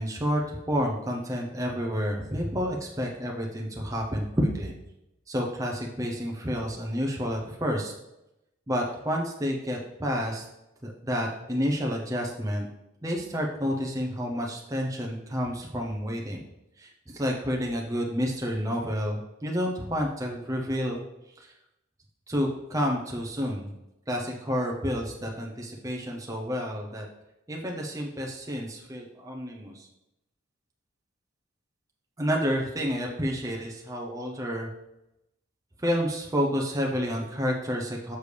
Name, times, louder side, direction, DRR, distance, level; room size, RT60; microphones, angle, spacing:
voice 1, 0.0-4.7 5.3-7.9 8.7-10.5 10.8-12.7 13.0-16.4 16.8-21.0 21.4-21.5 22.3-23.7 24.1-27.1 27.5-29.9 32.2-34.7 35.8-38.2, equal, 15° right, 0 dB, 0.6 m, -29 dB
6.7 x 6.7 x 3.3 m, 0.90 s
head